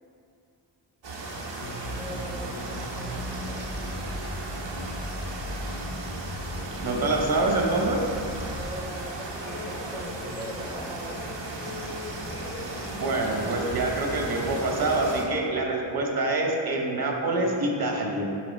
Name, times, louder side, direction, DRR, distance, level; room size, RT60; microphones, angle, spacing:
sound 1, 1.0-15.2, right 2 dB, 80° right, 1.1 m, -36 dB
sound 2, 1.6-8.6, left 1 dB, 85° left, 1.2 m, -37 dB
voice 1, 1.9-3.7 8.0-11.2, equal, 10° right, -1 dB, 0.6 m, -41 dB
voice 2, 6.8-8.0 12.9-18.2, right 2 dB, 55° right, 0 dB, 1.0 m, -26 dB
sound 3, 9.4-15.4, left 2 dB, 40° left, 0.7 m, -40 dB
7.6 x 3.8 x 5.2 m, 2.4 s
wide cardioid pair, 170°, 43 cm